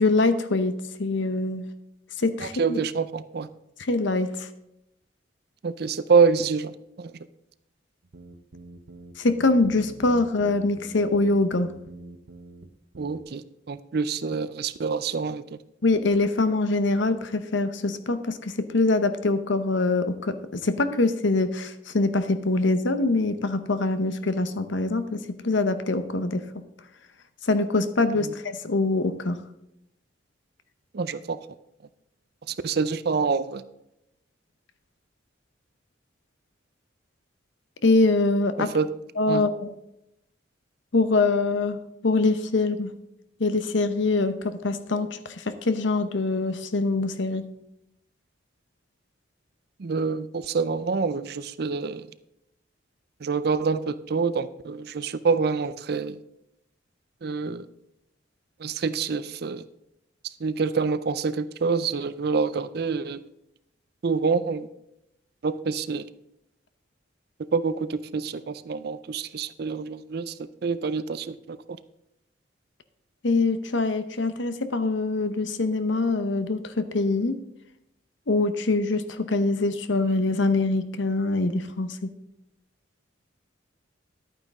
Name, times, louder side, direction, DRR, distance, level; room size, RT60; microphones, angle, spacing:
voice 1, 0.0-1.7 2.2-2.8 3.8-4.5 9.2-11.7 15.8-26.7 27.4-29.4 37.8-38.7 39.2-39.7 40.9-42.9 43.4-47.5 73.2-77.4 78.3-82.1, left 3 dB, 70° left, 11 dB, 0.8 m, -24 dB
voice 2, 2.4-3.5 5.6-6.7 7.0-7.3 13.0-15.4 28.2-28.3 30.9-31.4 32.5-33.6 38.6-38.9 39.3-39.4 49.8-52.1 53.2-56.2 57.2-57.7 58.6-59.6 60.4-63.2 64.0-64.7 65.4-66.1 67.5-70.3 70.6-71.6, right 5 dB, 50° right, 14 dB, 0.4 m, -26 dB
sound 1, 8.0-12.7 12.9-13.2, right 2 dB, 85° right, 0.9 m, -44 dB
11.0 x 9.0 x 3.6 m, 0.84 s
head